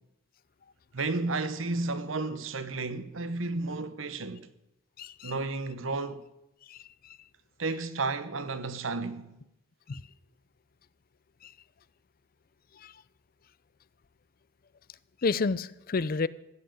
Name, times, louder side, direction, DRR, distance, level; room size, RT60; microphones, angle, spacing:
voice 1, 0.9-4.5 5.2-6.2 7.6-9.4, right 3 dB, 85° right, 1.0 m, -32 dB
voice 2, 5.0-5.3 6.7-7.2 9.9-10.0 11.4-11.5 12.7-12.9 15.2-16.3, left 4 dB, 50° left, 0.5 m, -31 dB
15.0 x 7.8 x 8.9 m
head